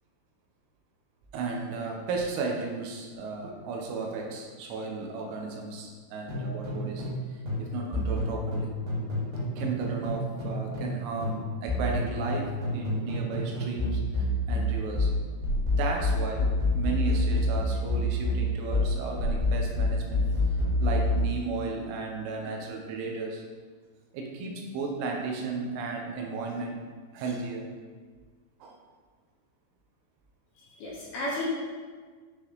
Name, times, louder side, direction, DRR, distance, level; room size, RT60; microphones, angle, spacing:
voice 1, 1.3-8.7 9.6-15.1 15.8-23.4 24.1-26.8 27.1-27.7 28.6-28.7, right 4 dB, 85° right, 1 dB, 3.3 m, -34 dB
sound 1, 6.3-7.2 7.5-11.0 11.2-21.3, left 1 dB, 65° right, 3.7 m, -27 dB
voice 2, 30.6-31.4, left 1 dB, 75° left, -7 dB, 2.5 m, -34 dB
10.0 x 3.8 x 3.0 m, 1.5 s
omnidirectional pair, 5.6 m